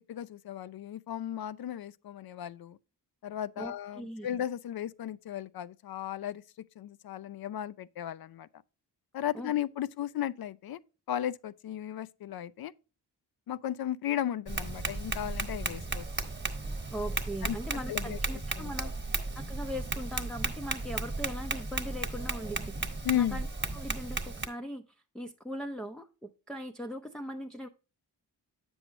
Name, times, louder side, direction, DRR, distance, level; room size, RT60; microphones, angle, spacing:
voice 1, 0.1-2.8 3.2-6.4 6.8-8.5 9.1-10.8 11.1-12.7 13.5-16.1 17.4-17.6 17.9-18.2 18.6-18.9 23.0-23.4, left 11 dB, 55° left, 0.5 m, -35 dB
voice 2, 3.6-4.3 9.3-9.5 16.9-18.9 19.3-23.5 23.7-24.8 25.1-27.7, equal, ahead, 0.6 m, -40 dB
Tap, 14.5-24.5, right 3 dB, 25° right, 1.4 m, -35 dB
7.8 x 6.3 x 3.0 m
cardioid pair, 50°, 43 cm